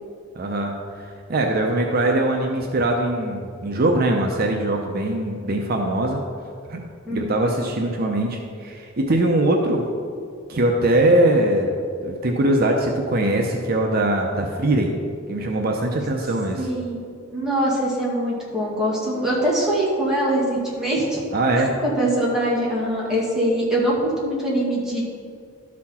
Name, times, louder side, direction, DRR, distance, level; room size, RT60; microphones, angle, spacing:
voice 1, 0.4-0.7 1.3-6.2 6.7-6.8 7.1-9.9 10.5-11.7 12.0-15.0 15.3-16.7 21.3-21.8, right 1 dB, 50° right, 1 dB, 0.6 m, -21 dB
voice 2, 7.1-7.4 16.6-17.0 17.3-21.2 21.8-25.0, right 1 dB, 5° right, -7 dB, 2.0 m, -23 dB
12.0 x 4.2 x 4.2 m, 2.2 s
head